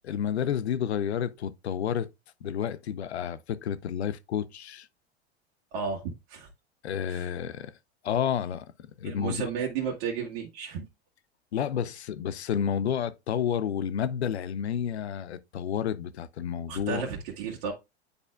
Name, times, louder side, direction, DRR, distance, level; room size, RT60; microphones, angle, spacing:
voice 1, 0.1-2.1 2.4-4.9 6.8-7.7 8.0-8.7 9.0-9.4 11.5-17.0, left 8 dB, 80° left, 0.6 m, -30 dB
voice 2, 5.7-6.5 7.1-7.3 9.0-10.8 16.7-17.7, right 6 dB, 60° right, 1.6 m, -33 dB
9.6 x 4.2 x 2.3 m
hypercardioid pair, 85°, 32 cm